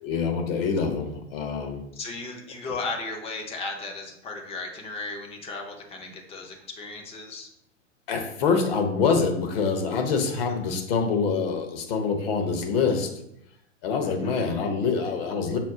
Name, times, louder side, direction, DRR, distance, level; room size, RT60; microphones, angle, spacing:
voice 1, 0.0-1.8 8.1-13.2 13.8-15.6, left 5 dB, 50° left, 4 dB, 0.8 m, -25 dB
voice 2, 1.9-7.5 14.0-14.4, left 3 dB, 15° left, 2 dB, 0.5 m, -35 dB
5.9 x 2.1 x 3.7 m, 0.79 s
figure-of-eight pair, 100°, 38 cm